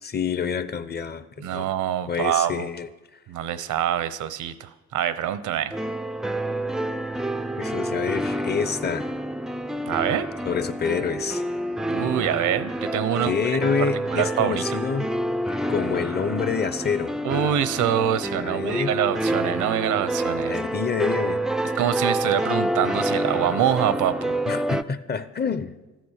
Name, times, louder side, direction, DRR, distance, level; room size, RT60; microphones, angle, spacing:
voice 1, 0.0-1.7 2.1-2.9 7.6-9.1 10.5-11.4 13.2-15.1 15.7-17.1 18.4-19.0 20.5-21.4 24.5-25.7, left 6 dB, 35° left, 13 dB, 0.8 m, -27 dB
voice 2, 1.4-2.7 3.3-5.7 9.9-10.3 11.9-14.6 17.2-20.5 21.8-24.4, right 10 dB, 80° right, 14 dB, 0.8 m, -25 dB
sound 1, 5.7-24.8, right 1 dB, ahead, 0.4 m, -28 dB
13.5 x 9.3 x 6.5 m, 1.1 s
cardioid pair, 90°, 30 cm